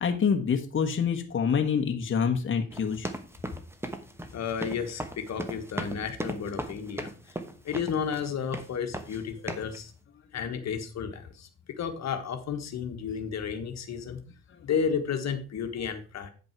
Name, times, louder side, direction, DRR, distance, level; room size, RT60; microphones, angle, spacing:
voice 1, 0.0-3.1 14.1-14.2 14.5-14.7, left 6 dB, 40° left, 4 dB, 1.3 m, -26 dB
sound 1, 2.7-8.3 8.5-9.2 9.5-9.8, right 1 dB, 10° right, 1.1 m, -36 dB
voice 2, 4.3-7.1 7.6-9.9 10.3-11.5 11.8-14.2 14.6-16.3, left 6 dB, 60° left, 6 dB, 1.4 m, -32 dB
9.2 x 5.2 x 4.5 m, 0.36 s
cardioid pair, 90°, 30 cm